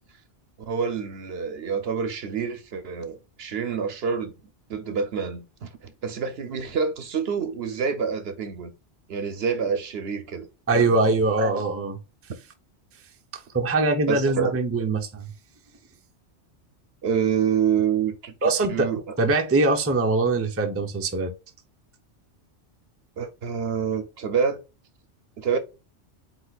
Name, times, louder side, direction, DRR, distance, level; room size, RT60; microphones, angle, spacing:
voice 1, 0.7-4.3 4.7-5.7 6.0-8.7 9.1-10.5 10.7-11.0 11.4-11.6 14.1-14.5 17.0-19.1 23.2-24.6 25.4-25.6, right 6 dB, 60° right, 0.9 m, -27 dB
voice 2, 10.7-12.0 13.5-15.3 18.4-18.9 19.2-21.3, right 2 dB, 15° right, 0.5 m, -22 dB
8.0 x 2.8 x 2.4 m
omnidirectional pair, 1.2 m